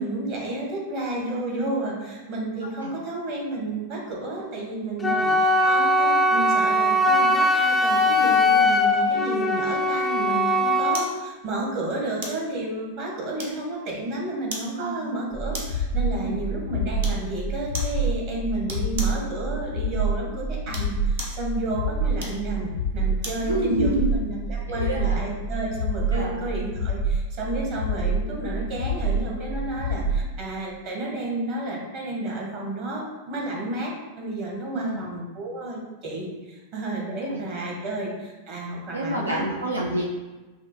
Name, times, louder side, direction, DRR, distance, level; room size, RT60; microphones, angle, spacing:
voice 1, 0.0-39.5, right 2 dB, 45° right, -2 dB, 1.2 m, -31 dB
Wind instrument woodwind instrument, 5.0-11.1, left 1 dB, 10° left, 0.4 m, -20 dB
voice 2, 5.0-5.3 14.8-15.2 16.2-16.4 23.4-24.1 24.7-25.2 26.1-26.4 34.7-35.0 37.3-37.4 38.9-40.1, right 2 dB, 80° right, -2 dB, 0.4 m, -28 dB
sound 1, 10.9-11.2 12.2-12.5 13.4-13.8 14.5-14.7 15.5-15.9 17.0-17.3 17.7-18.0 18.7-19.2 20.6-21.4 22.2-23.5 23.9-24.1, right 2 dB, 60° right, 0.7 m, -36 dB
sound 2, 15.3-30.3, right 2 dB, 70° left, 0.5 m, -27 dB
5.7 x 2.1 x 3.0 m, 1.2 s
figure-of-eight pair, 90°, 0 cm